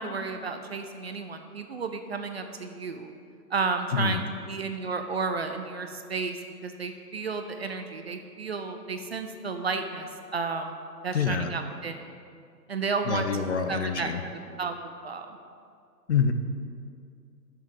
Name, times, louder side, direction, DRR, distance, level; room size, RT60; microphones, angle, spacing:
voice 1, 0.0-3.1 3.5-10.8 11.0-12.0 12.7-13.3 13.7-15.4, right 4 dB, 40° right, 6 dB, 0.5 m, -32 dB
voice 2, 11.1-11.5 13.1-14.2 16.1-16.3, left 6 dB, 45° left, 8 dB, 0.6 m, -26 dB
6.8 x 6.6 x 7.4 m, 2.3 s
figure-of-eight pair, 140°, 50 cm